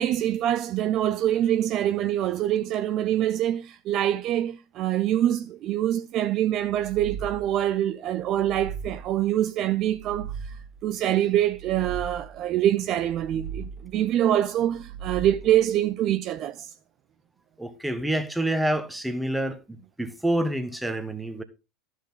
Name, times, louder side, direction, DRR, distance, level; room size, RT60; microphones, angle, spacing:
voice 1, 0.0-10.6 10.8-16.7, right 12 dB, 40° right, 0.5 m, -25 dB
sound 1, 6.6-7.7 8.2-9.3 9.8-10.9 11.4-12.5 13.0-14.0 14.6-15.7, right 6 dB, 75° left, 2.0 m, -39 dB
voice 2, 17.6-21.4, right 1 dB, 5° right, 1.3 m, -28 dB
13.5 x 6.4 x 3.8 m
figure-of-eight pair, 80°, 0 cm